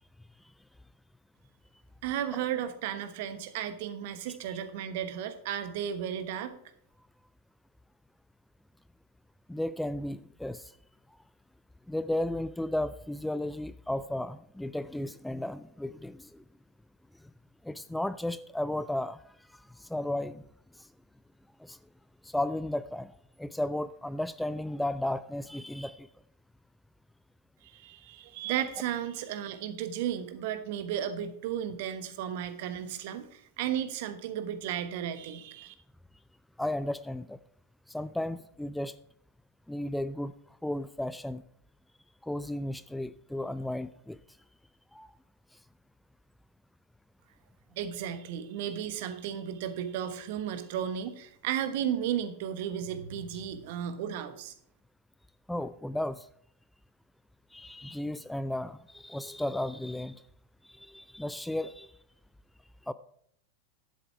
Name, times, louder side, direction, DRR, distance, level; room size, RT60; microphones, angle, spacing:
voice 1, 2.0-6.5 27.6-35.7 47.7-54.5, right 9 dB, 50° right, 11 dB, 1.1 m, -34 dB
voice 2, 9.5-10.7 11.9-16.4 17.6-19.2 19.5-20.4 20.7-20.9 21.6-21.8 22.2-23.1 23.4-26.1 36.6-37.4 37.9-38.9 39.7-40.3 40.6-41.4 42.2-44.2 44.9-45.1 55.5-56.3 57.5-60.2 60.6-61.9 62.9-63.0, left 1 dB, 5° left, 15 dB, 0.3 m, -34 dB
10.5 x 8.0 x 4.6 m, 0.68 s
figure-of-eight pair, 90°, 0 cm